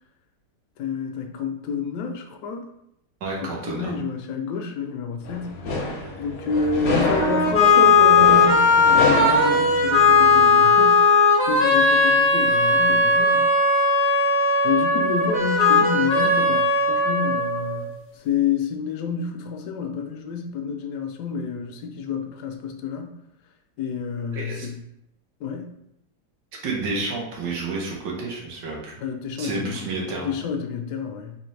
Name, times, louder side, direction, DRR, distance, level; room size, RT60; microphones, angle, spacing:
voice 1, 0.8-2.7 3.4-5.8 6.2-13.9 14.6-17.9 18.1-23.2 23.8-24.8 25.4-25.7 29.0-29.8 30.1-31.4, left 6 dB, 70° left, 4 dB, 1.1 m, -29 dB
voice 2, 3.2-3.9 24.3-24.7 26.6-29.0 29.4-30.3, right 3 dB, 75° right, -2 dB, 1.6 m, -30 dB
sound 1, 5.2-10.4, left 3 dB, 55° left, 0.7 m, -28 dB
sound 2, 7.0-17.9, left 3 dB, 15° left, 0.4 m, -18 dB
4.1 x 2.8 x 3.2 m, 0.77 s
omnidirectional pair, 1.9 m